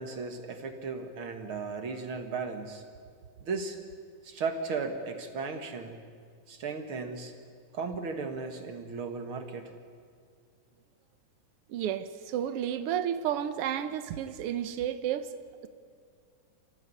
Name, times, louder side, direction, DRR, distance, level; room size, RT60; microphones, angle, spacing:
voice 1, 0.0-2.8 3.4-3.8 4.2-6.0 6.5-7.3 7.7-9.7, right 4 dB, 45° right, 5 dB, 2.1 m, -36 dB
voice 2, 11.7-15.3, right 10 dB, 80° right, 11 dB, 1.3 m, -31 dB
28.5 x 15.5 x 9.7 m, 2.1 s
omnidirectional pair, 3.8 m